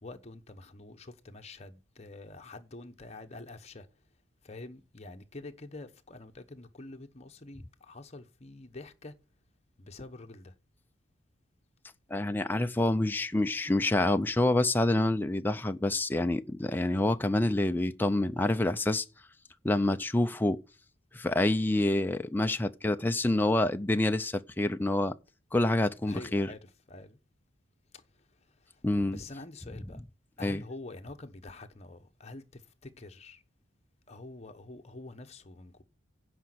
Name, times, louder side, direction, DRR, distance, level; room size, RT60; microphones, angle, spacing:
voice 1, 0.0-3.9 4.4-9.1 9.8-10.5 26.1-27.2 27.9-28.8 29.1-30.0 30.4-33.4 34.1-35.8, left 2 dB, 35° left, 1.1 m, -46 dB
voice 2, 12.1-19.0 19.6-20.6 21.1-25.2 25.5-26.5 28.8-29.2 30.4-30.6, left 1 dB, 10° left, 0.5 m, -27 dB
10.0 x 5.2 x 7.8 m
head